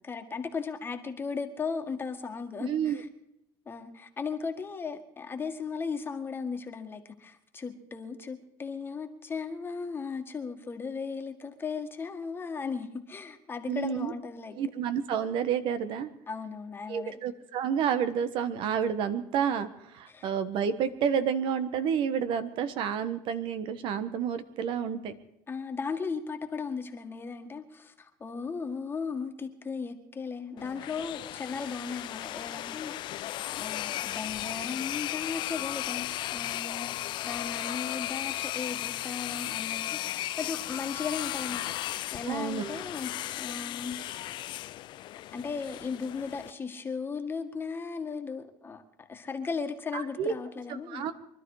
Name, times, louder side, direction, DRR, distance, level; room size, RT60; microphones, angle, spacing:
voice 1, 0.0-3.1 3.7-14.6 16.3-17.2 20.1-20.3 25.5-37.0 37.2-44.0 45.3-48.8 49.1-51.1, left 5 dB, 20° left, 1.8 m, -36 dB
voice 2, 2.6-3.0 13.7-14.1 14.5-16.1 16.9-25.1 42.2-42.8 49.9-50.3 50.9-51.1, right 7 dB, 55° right, 1.4 m, -30 dB
sound 1, 30.6-46.5, left 15 dB, 50° left, 0.6 m, -35 dB
24.0 x 12.0 x 4.9 m
supercardioid pair, 120°, 10 cm